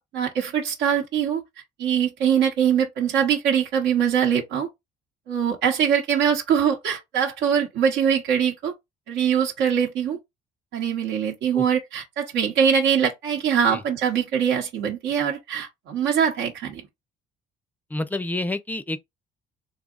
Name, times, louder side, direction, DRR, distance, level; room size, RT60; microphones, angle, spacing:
voice 1, 0.1-1.4 1.8-4.7 5.3-8.7 9.1-10.2 10.7-16.8, right 8 dB, 85° right, 0.9 m, -22 dB
voice 2, 17.9-19.0, left 2 dB, 10° left, 0.4 m, -29 dB
4.0 x 2.8 x 2.4 m
cardioid pair, 110°, 17 cm